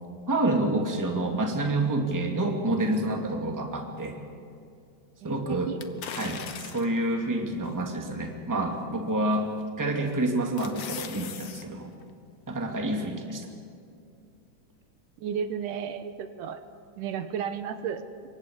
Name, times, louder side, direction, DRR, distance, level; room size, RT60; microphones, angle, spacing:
voice 1, 0.3-4.2 5.2-5.7 6.2-9.5 9.8-11.9 12.5-13.5, right 1 dB, 5° right, 2 dB, 1.8 m, -28 dB
voice 2, 5.2-5.8 15.2-16.6 17.0-18.0, right 7 dB, 80° right, 10 dB, 2.5 m, -33 dB
sound 1, 5.8-7.0 7.6-7.7 9.3-9.7 10.1-11.6 12.0-12.1, left 7 dB, 65° left, 1.1 m, -39 dB
27.0 x 23.5 x 5.2 m, 2.4 s
omnidirectional pair, 3.8 m